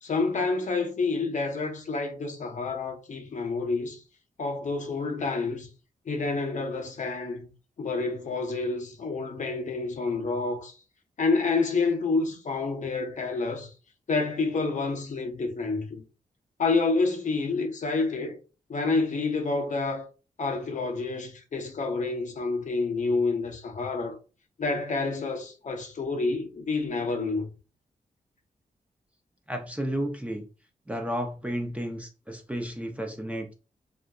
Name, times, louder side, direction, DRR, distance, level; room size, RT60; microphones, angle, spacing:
voice 1, 0.0-4.0 4.4-5.7 6.1-7.5 7.8-10.7 11.2-13.7 14.1-16.0 16.6-18.4 18.7-20.1 20.4-24.2 24.6-27.5, left 3 dB, 55° left, 0.6 m, -28 dB
voice 2, 29.5-30.4 30.9-33.5, equal, 10° right, 0.5 m, -32 dB
2.6 x 2.4 x 2.2 m
wide cardioid pair, 100°, 15 cm